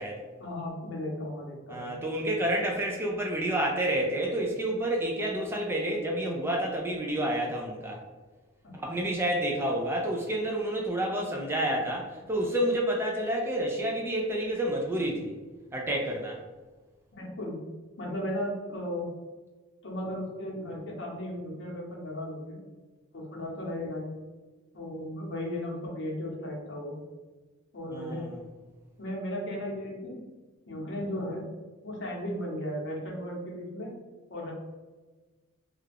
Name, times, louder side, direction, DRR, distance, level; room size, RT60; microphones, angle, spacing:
voice 1, 0.4-2.0 8.7-9.0 17.1-17.6 18.0-19.1 19.8-22.6 23.1-24.1 24.7-27.0 27.7-28.3 29.0-30.2 30.7-31.4 31.8-33.9 34.3-34.5, left 1 dB, 60° left, -2 dB, 0.8 m, -35 dB
voice 2, 1.7-8.0 8.8-15.3 15.7-16.4 27.9-28.4, right 1 dB, 10° right, -1 dB, 0.3 m, -29 dB
2.4 x 2.2 x 3.3 m, 1.2 s
head